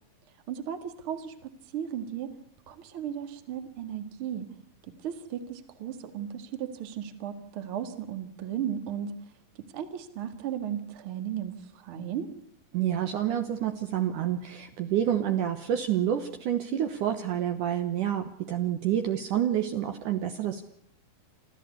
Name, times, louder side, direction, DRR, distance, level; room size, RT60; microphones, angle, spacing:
voice 1, 0.5-2.3 2.7-4.5 5.0-9.1 9.7-12.3, right 9 dB, 45° right, 9 dB, 2.1 m, -35 dB
voice 2, 12.7-20.6, right 10 dB, 65° right, 7 dB, 2.4 m, -28 dB
27.0 x 14.0 x 8.3 m, 0.73 s
omnidirectional pair, 4.4 m